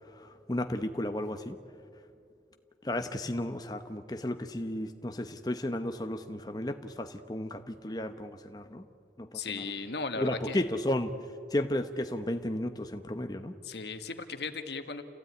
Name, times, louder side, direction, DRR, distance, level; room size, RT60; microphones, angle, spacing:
voice 1, 0.2-1.6 2.8-8.8 9.2-9.6 10.2-11.1 11.5-13.5, left 1 dB, 20° left, 7 dB, 0.9 m, -33 dB
voice 2, 9.3-10.6 13.6-15.0, left 4 dB, 70° left, 8 dB, 1.6 m, -36 dB
28.5 x 16.0 x 9.4 m, 2.4 s
head